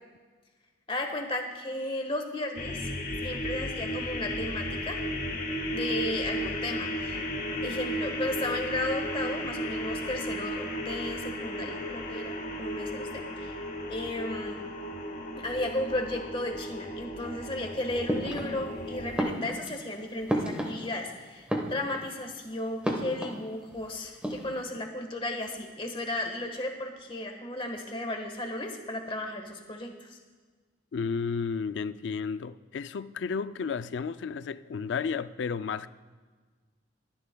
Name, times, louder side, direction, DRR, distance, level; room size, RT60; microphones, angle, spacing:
voice 1, 0.9-2.8 3.2-5.0 5.7-7.2 7.6-13.5 13.9-14.6 15.4-30.2, left 1 dB, 30° left, 1.4 m, -34 dB
sound 1, 2.6-19.2, equal, 45° left, 1.4 m, -34 dB
sound 2, 18.1-18.8 19.1-21.1 21.4-22.2 22.8-23.8 24.1-24.6, equal, 5° right, 1.2 m, -33 dB
voice 2, 30.9-35.9, left 5 dB, 70° left, 0.4 m, -32 dB
22.5 x 10.0 x 2.3 m
head